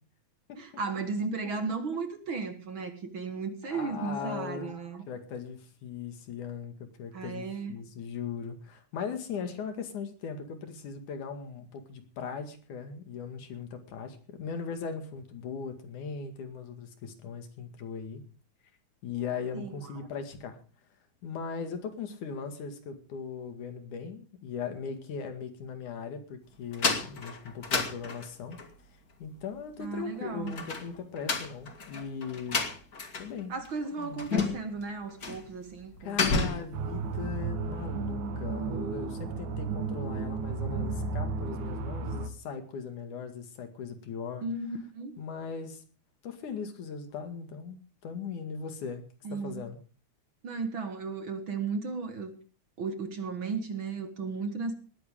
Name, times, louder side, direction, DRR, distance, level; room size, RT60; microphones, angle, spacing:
voice 1, 0.6-5.0 7.1-7.9 19.5-19.8 29.8-30.6 33.5-36.4 44.4-45.2 49.2-49.6 50.4-52.3 52.8-54.7, right 4 dB, 50° right, 9 dB, 2.0 m, -35 dB
voice 2, 3.6-4.8 5.1-18.2 19.0-20.6 21.2-28.6 29.2-32.6 33.2-33.5 34.0-34.3 36.0-44.5 45.2-45.8 46.2-49.8, left 6 dB, 85° left, 7 dB, 3.6 m, -39 dB
sound 1, 26.7-28.7 30.5-33.4 33.6-33.7 34.2-34.8 35.2-35.5 35.8-36.8, left 4 dB, 35° left, 2.1 m, -31 dB
sound 2, 36.7-42.3, right 4 dB, 90° right, 2.9 m, -33 dB
19.5 x 14.0 x 3.7 m, 0.36 s
omnidirectional pair, 3.4 m